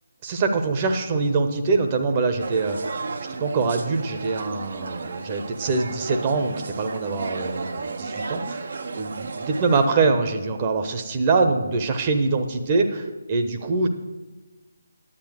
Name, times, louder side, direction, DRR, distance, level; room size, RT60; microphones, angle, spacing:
voice 1, 0.2-3.0 3.4-8.7 8.9-13.9, right 4 dB, 25° right, 5 dB, 1.0 m, -24 dB
sound 1, 2.4-9.9, right 4 dB, 50° right, 0.8 m, -33 dB
10.0 x 8.7 x 6.4 m, 1.2 s
figure-of-eight pair, 145°, 0 cm